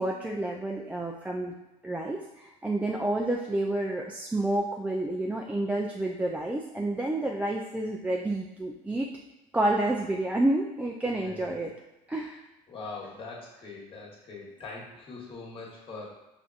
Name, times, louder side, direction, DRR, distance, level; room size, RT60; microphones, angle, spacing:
voice 1, 0.0-1.6 1.8-9.1 9.5-11.7 12.1-12.4, right 1 dB, 10° right, -1 dB, 0.3 m, -29 dB
voice 2, 11.1-11.6 12.7-16.1, left 3 dB, 35° left, -3 dB, 1.3 m, -42 dB
5.1 x 2.5 x 2.4 m, 1.0 s
supercardioid pair, 80°, 16 cm